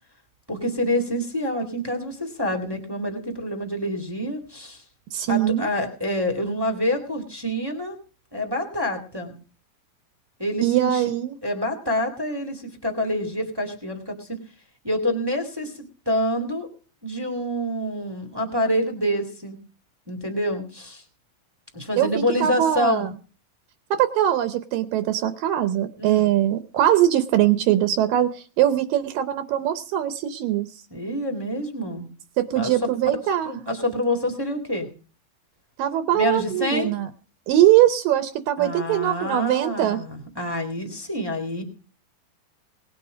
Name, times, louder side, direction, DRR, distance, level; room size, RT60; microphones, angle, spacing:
voice 1, 0.5-4.8 5.3-8.0 8.3-9.3 10.4-11.1 11.4-14.4 14.8-16.7 17.0-19.6 20.1-21.0 21.7-23.1 26.0-26.3 30.9-32.1 32.5-32.9 33.4-34.9 36.1-36.9 38.6-41.6, left 1 dB, 10° right, 3 dB, 1.1 m, -27 dB
voice 2, 5.1-5.7 10.6-11.4 22.0-23.1 23.9-30.7 32.4-33.5 35.8-37.1 37.5-40.0, right 12 dB, 75° right, 11 dB, 2.3 m, -21 dB
19.0 x 8.7 x 5.1 m, 0.37 s
omnidirectional pair, 4.2 m